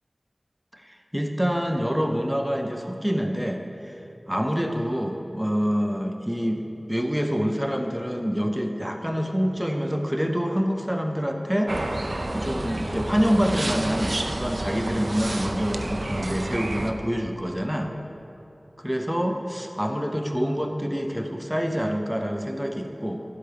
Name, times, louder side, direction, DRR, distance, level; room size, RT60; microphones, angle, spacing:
voice 1, 0.7-4.0 4.3-11.7 12.3-17.9 18.8-23.2, equal, 5° right, 4 dB, 0.6 m, -26 dB
sound 1, 11.7-16.9, right 1 dB, 65° right, 0.5 m, -30 dB
10.5 x 8.3 x 3.4 m, 2.8 s
wide cardioid pair, 55°, 0 cm